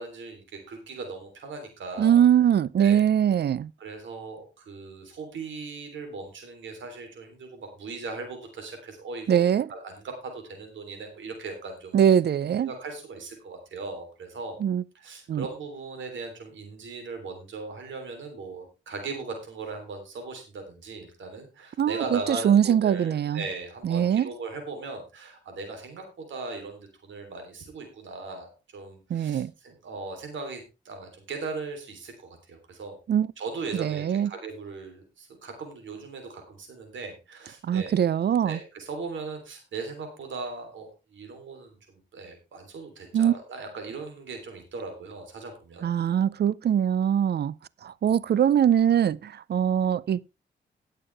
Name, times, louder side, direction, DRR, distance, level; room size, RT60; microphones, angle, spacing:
voice 1, 0.0-2.2 2.8-3.0 3.8-9.4 9.7-12.0 12.6-14.6 14.9-33.0 33.4-38.0 38.4-45.9, right 3 dB, 90° right, 3.3 m, -38 dB
voice 2, 2.0-3.7 9.3-9.7 11.9-12.7 14.6-14.8 15.3-15.4 21.8-23.4 23.8-24.3 29.1-29.5 33.1-33.3 33.8-34.3 37.6-38.6 43.1-43.3 45.8-47.5 47.8-50.2, right 9 dB, 60° right, 0.5 m, -22 dB
18.0 x 6.8 x 3.4 m
cardioid pair, 70°, 19 cm